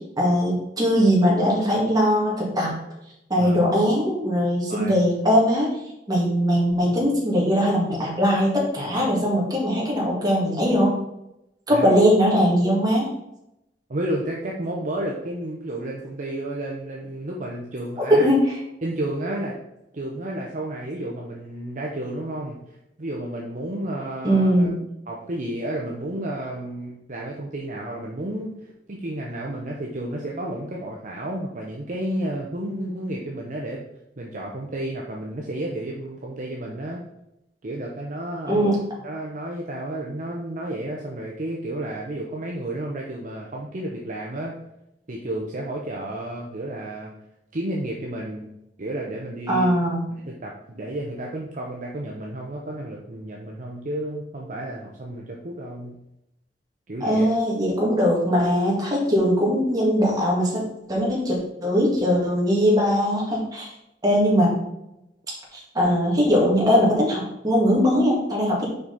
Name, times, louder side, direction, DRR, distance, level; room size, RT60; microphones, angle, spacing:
voice 1, 0.0-2.7 3.3-5.7 6.1-11.0 11.7-13.1 18.2-18.6 24.2-24.8 38.5-38.8 49.5-50.0 57.0-60.6 60.9-63.7 64.0-64.6 65.5-68.7, equal, 25° right, -4 dB, 2.1 m, -20 dB
voice 2, 13.9-18.3 18.8-19.6 19.9-22.6 23.0-24.7 25.1-33.8 34.2-37.0 37.6-38.7 39.0-44.5 45.1-47.1 47.5-48.5 48.8-49.7 50.3-56.0 56.9-57.3, right 1 dB, 45° right, -1 dB, 0.7 m, -31 dB
5.9 x 5.1 x 4.0 m, 0.86 s
head